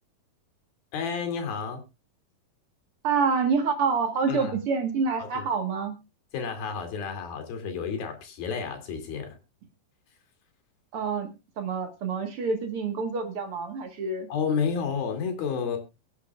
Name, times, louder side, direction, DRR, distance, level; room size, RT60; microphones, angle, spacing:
voice 1, 0.9-1.8 4.3-4.5 5.2-5.4 6.3-9.4 14.3-15.8, left 6 dB, 90° left, 5 dB, 4.2 m, -31 dB
voice 2, 3.0-6.0 10.9-14.3, right 5 dB, 55° right, 6 dB, 1.8 m, -27 dB
23.5 x 8.4 x 2.3 m, 0.25 s
omnidirectional pair, 4.1 m